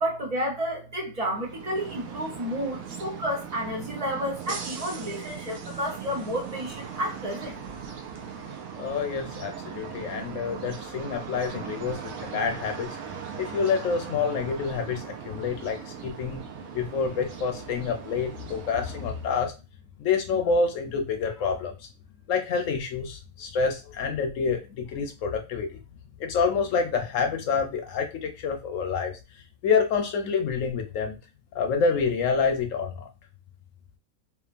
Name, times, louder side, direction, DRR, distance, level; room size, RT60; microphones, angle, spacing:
voice 1, 0.0-7.6, equal, 50° right, -1 dB, 0.4 m, -31 dB
sound 1, 1.3-19.4, right 7 dB, 70° right, 1.0 m, -39 dB
voice 2, 8.8-12.9 13.4-16.4 16.7-19.5 20.0-21.9 22.3-25.8 26.2-29.1 29.6-31.2 31.5-33.1, left 5 dB, 70° left, 4 dB, 0.8 m, -27 dB
2.9 x 2.4 x 2.4 m, 0.29 s
omnidirectional pair, 1.6 m